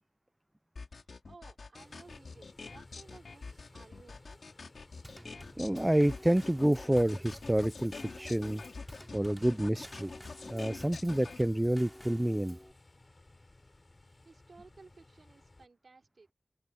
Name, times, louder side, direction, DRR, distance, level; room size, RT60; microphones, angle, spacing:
sound 1, 0.8-11.4, left 4 dB, 85° left, 3.2 m, -46 dB
voice 1, 1.3-4.4 14.2-16.3, right 3 dB, 75° right, 4.2 m, -57 dB
sound 2, 1.7-15.7, left 2 dB, 40° left, 3.7 m, -60 dB
Drum kit / Snare drum / Bass drum, 5.0-12.7, equal, 5° left, 4.1 m, -51 dB
voice 2, 5.6-8.6 9.1-10.1 10.5-12.6, right 1 dB, 15° right, 0.5 m, -28 dB
open air
wide cardioid pair, 55°, 0 cm